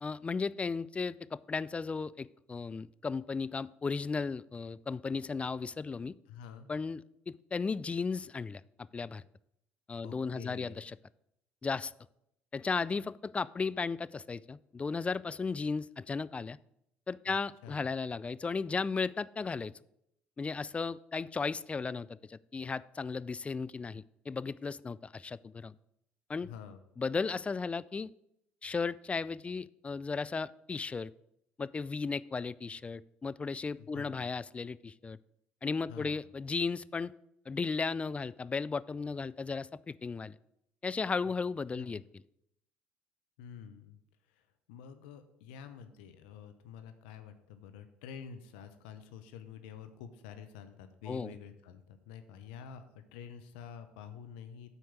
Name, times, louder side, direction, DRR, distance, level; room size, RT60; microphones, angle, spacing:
voice 1, 0.0-6.1 6.7-7.0 7.3-8.6 8.9-9.2 9.9-11.0 11.6-11.9 12.5-16.6 17.1-19.7 20.4-25.7 26.3-26.5 27.0-28.1 28.6-31.1 31.6-35.2 35.6-37.1 37.5-40.4 40.8-42.2 51.1-51.3, left 4 dB, 25° left, 18 dB, 0.3 m, -35 dB
voice 2, 6.3-6.7 10.0-10.8 17.3-17.4 17.6-17.8 26.4-26.8 33.8-34.3 35.9-36.3 41.7-42.0 43.4-44.0 44.3-54.7, left 8 dB, 80° left, 9 dB, 0.7 m, -48 dB
8.2 x 4.6 x 6.7 m, 0.78 s
hypercardioid pair, 65°, 5 cm